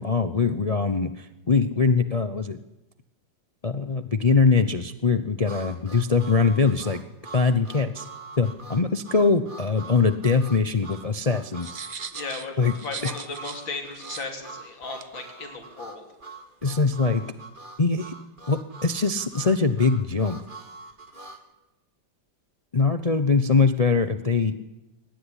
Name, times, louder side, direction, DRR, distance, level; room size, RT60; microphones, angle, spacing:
voice 1, 0.0-2.6 3.6-7.0 7.3-8.1 8.4-11.8 12.6-12.7 13.0-13.1 16.6-17.2 17.8-18.1 18.5-20.4 22.7-24.5, left 4 dB, 40° left, 10 dB, 0.5 m, -22 dB
Harmonica, 5.4-21.4, right 3 dB, 25° right, 1.9 m, -44 dB
sound 1, 11.6-13.6 13.9-14.2 15.0-15.1, right 5 dB, 55° right, 0.4 m, -38 dB
voice 2, 12.1-12.5 12.8-16.0, left 3 dB, 90° left, 3 dB, 4.1 m, -35 dB
21.5 x 18.5 x 10.0 m, 1.0 s
omnidirectional pair, 2.0 m